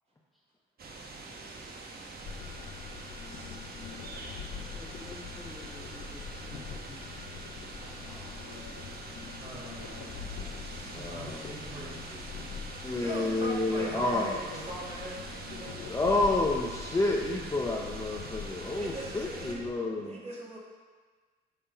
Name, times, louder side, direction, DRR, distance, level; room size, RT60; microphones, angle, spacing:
sound 1, 0.8-19.5, right 3 dB, 50° right, 1.0 m, -44 dB
voice 1, 1.2-2.0 3.3-3.6 9.4-12.4 12.8-16.0 18.6-20.6, right 2 dB, 35° right, -5 dB, 2.1 m, -42 dB
sound 2, 2.3-19.7, left 7 dB, 80° left, 0.8 m, -44 dB
voice 2, 4.7-7.1 7.7-8.3, left 1 dB, ahead, -4 dB, 1.7 m, -51 dB
voice 3, 10.9-12.1 12.8-14.4 15.8-20.2, left 2 dB, 15° left, -1 dB, 0.7 m, -30 dB
8.7 x 3.6 x 5.6 m, 1.4 s
cardioid pair, 90°, 20 cm